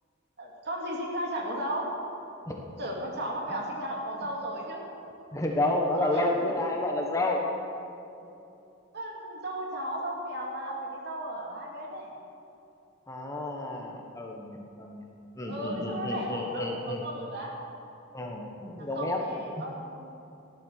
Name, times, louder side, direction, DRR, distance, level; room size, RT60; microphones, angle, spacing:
voice 1, 0.4-1.9 2.8-4.8 6.0-6.5 8.9-12.1 15.5-17.5 19.0-20.2, right 1 dB, 55° right, -1 dB, 2.8 m, -35 dB
voice 2, 5.3-7.4 13.1-15.0 15.4-17.1 18.1-19.2, left 1 dB, 15° left, 0 dB, 1.4 m, -30 dB
14.5 x 11.5 x 6.6 m, 2.7 s
head